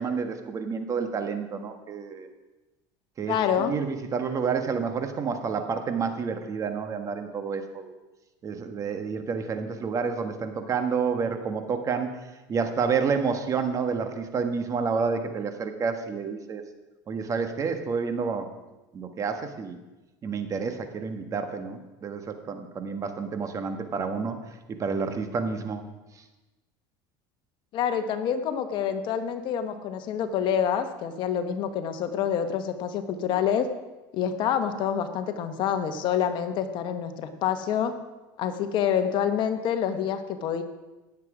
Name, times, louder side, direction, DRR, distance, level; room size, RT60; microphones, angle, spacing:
voice 1, 0.0-2.3 3.2-7.9 8.4-12.2 12.5-16.6 17.1-18.5 18.9-19.8 20.2-24.4 24.7-25.8, right 5 dB, 35° right, 7 dB, 1.3 m, -29 dB
voice 2, 3.3-3.8 27.7-33.7 34.1-37.9 38.4-40.6, left 8 dB, 50° left, 8 dB, 1.3 m, -27 dB
17.5 x 7.5 x 5.0 m, 1.1 s
supercardioid pair, 115°, 10 cm